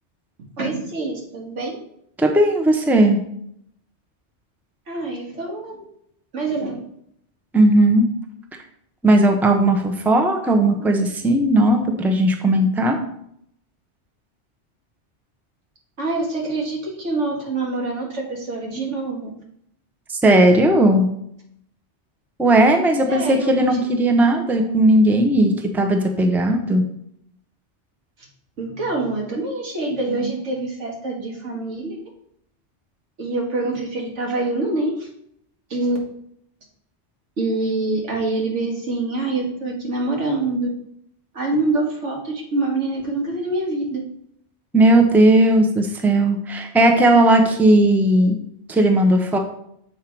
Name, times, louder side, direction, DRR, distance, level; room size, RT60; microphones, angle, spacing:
voice 1, 0.6-1.8 4.9-5.8 6.3-6.8 16.0-19.3 23.1-23.8 28.6-32.0 33.2-35.1 35.7-36.0 37.4-40.7 41.3-44.0, right 2 dB, 90° right, -1 dB, 2.0 m, -25 dB
voice 2, 2.2-3.2 7.5-8.1 9.0-13.0 20.2-21.1 22.4-26.8 44.7-48.4 48.7-49.4, right 1 dB, ahead, 3 dB, 0.7 m, -16 dB
7.1 x 5.6 x 4.6 m, 0.73 s
omnidirectional pair, 1.2 m